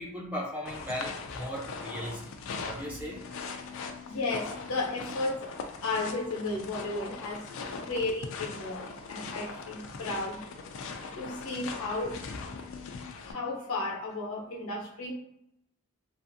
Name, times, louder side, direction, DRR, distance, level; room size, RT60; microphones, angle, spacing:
voice 1, 0.0-2.2 2.6-3.2, equal, 5° right, -4 dB, 0.5 m, -37 dB
sound 1, 0.7-13.3, left 4 dB, 65° left, 0.4 m, -40 dB
voice 2, 3.7-10.4 11.1-12.3 13.2-15.1, left 2 dB, 85° left, -2 dB, 0.8 m, -34 dB
2.5 x 2.5 x 2.6 m, 0.82 s
head